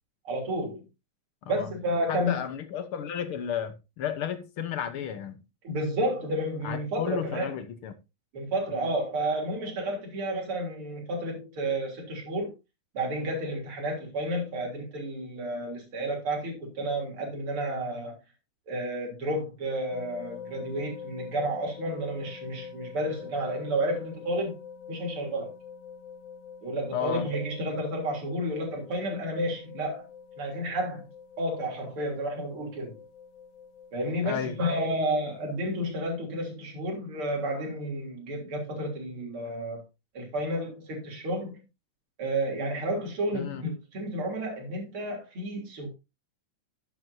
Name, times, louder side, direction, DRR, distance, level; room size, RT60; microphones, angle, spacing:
voice 1, 0.2-0.8 1.4-2.4 5.6-7.6 8.3-12.5 12.9-18.2 18.7-24.6 24.9-25.5 26.6-30.0 30.4-31.0 31.4-33.0 33.9-39.8 40.1-41.6 42.2-45.9, right 1 dB, 45° right, 4.1 m, -31 dB
voice 2, 2.1-5.4 6.6-8.0 8.7-8.9 26.9-27.3 34.2-34.6 43.3-43.6, left 8 dB, 65° left, 1.4 m, -33 dB
sound 1, 19.9-35.9, left 6 dB, 80° left, 2.5 m, -46 dB
12.0 x 9.2 x 2.7 m
omnidirectional pair, 3.6 m